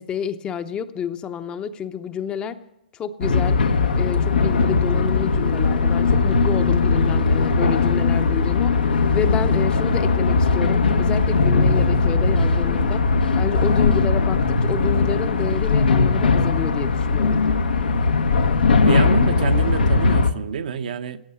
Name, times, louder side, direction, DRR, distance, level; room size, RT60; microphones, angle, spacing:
voice 1, 0.0-2.6 2.9-3.6 4.0-8.7 9.1-13.0 13.4-17.4, left 8 dB, 20° left, 10 dB, 0.7 m, -29 dB
sound 1, 3.2-20.3, left 4 dB, 90° left, 1.2 m, -19 dB
voice 2, 18.8-21.2, right 7 dB, 65° right, 9 dB, 0.9 m, -27 dB
15.5 x 9.6 x 7.0 m, 0.85 s
hypercardioid pair, 135°, 5 cm